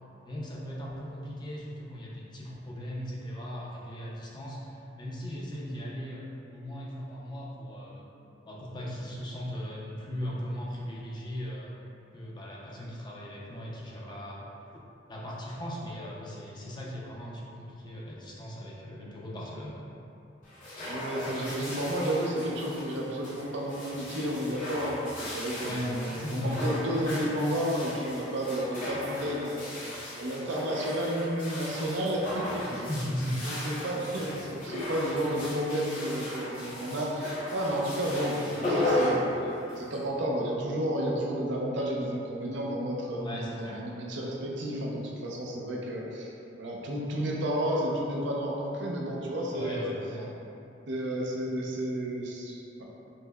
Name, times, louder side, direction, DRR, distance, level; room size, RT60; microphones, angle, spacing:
voice 1, 0.2-6.3 6.5-8.1 8.5-11.7 12.1-14.7 15.1-19.8 25.6-26.6 32.9-33.3 43.2-43.8 49.5-50.3, equal, 25° left, -4 dB, 0.4 m, -38 dB
sound 1, 20.4-40.0, left 1 dB, 45° left, 0.8 m, -36 dB
voice 2, 20.9-29.6 30.1-32.9 33.4-39.3 39.8-46.3 46.6-49.9 50.9-52.8, equal, 65° right, -3 dB, 0.5 m, -31 dB
5.3 x 2.0 x 2.2 m, 2.8 s
head